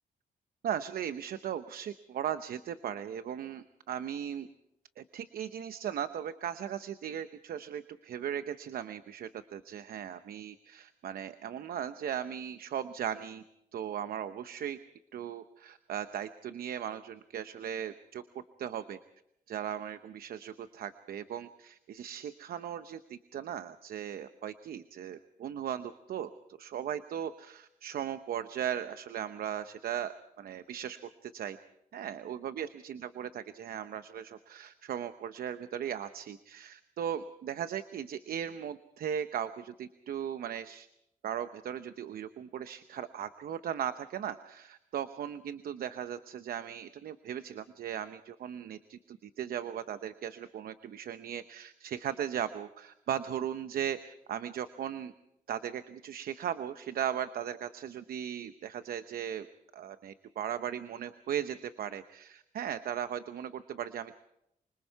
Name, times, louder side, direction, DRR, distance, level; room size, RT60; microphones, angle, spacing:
voice 1, 0.6-4.5 5.0-13.4 13.7-14.8 15.1-19.0 19.5-26.3 26.6-31.0 31.2-31.6 31.9-40.9 41.2-55.1 55.5-59.5 59.7-64.1, right 9 dB, 80° right, 11 dB, 0.8 m, -37 dB
25.5 x 25.5 x 4.7 m, 0.80 s
cardioid pair, 110°, 15 cm